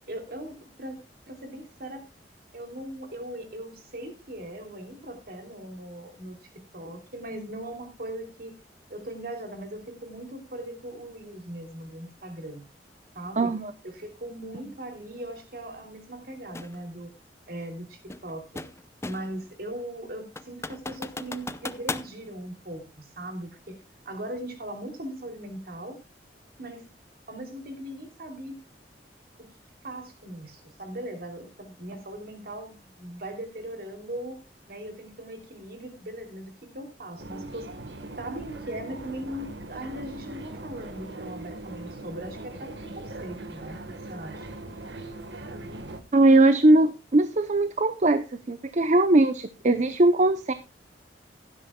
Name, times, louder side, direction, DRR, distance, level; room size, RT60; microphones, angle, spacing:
voice 1, 0.1-1.0 1.3-2.0 2.5-6.4 6.7-8.5 8.9-12.6 13.1-13.5 13.8-17.1 17.5-18.6 19.0-23.8 24.0-26.0 26.6-26.8 27.3-28.6 29.4-29.5 29.8-34.4 34.7-37.7 38.2-43.8 44.1-44.6, right 1 dB, 60° right, 5 dB, 3.1 m, -39 dB
voice 2, 13.4-13.7 46.1-50.5, right 2 dB, 45° right, 11 dB, 0.7 m, -20 dB
sound 1, 16.5-16.8 18.1-19.4 19.8-19.9 20.4-22.1, left 3 dB, 15° left, 0.6 m, -36 dB
sound 2, 37.2-46.0, right 2 dB, 80° right, 1.5 m, -40 dB
16.0 x 12.0 x 2.3 m, 0.27 s
head